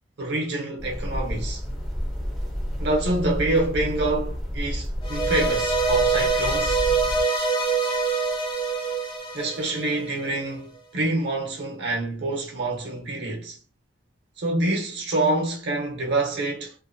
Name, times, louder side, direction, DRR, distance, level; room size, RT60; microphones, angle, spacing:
voice 1, 0.2-1.6 2.8-6.8 9.3-13.6 14.4-16.7, right 2 dB, 65° right, 0.9 m, -26 dB
sound 1, 0.8-7.2, equal, ahead, 0.8 m, -30 dB
sound 2, 5.0-10.3, right 4 dB, 25° left, 1.1 m, -25 dB
2.8 x 2.6 x 2.2 m
head